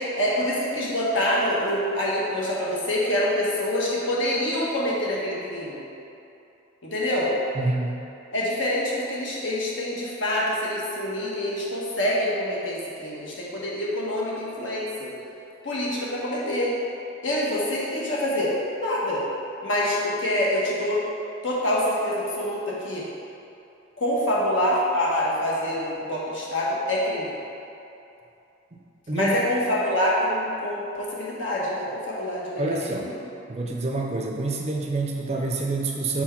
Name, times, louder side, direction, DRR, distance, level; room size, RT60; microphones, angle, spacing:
voice 1, 0.2-5.8 6.8-7.3 8.3-15.1 15.6-16.7 17.2-19.2 19.6-21.0 21.4-23.0 24.0-27.3 29.1-33.2, left 1 dB, 75° left, -6 dB, 1.3 m, -26 dB
voice 2, 7.5-8.0 29.1-29.4 32.6-33.1 33.5-36.2, right 2 dB, 30° right, 0 dB, 0.5 m, -27 dB
4.5 x 4.4 x 5.8 m, 2.8 s
head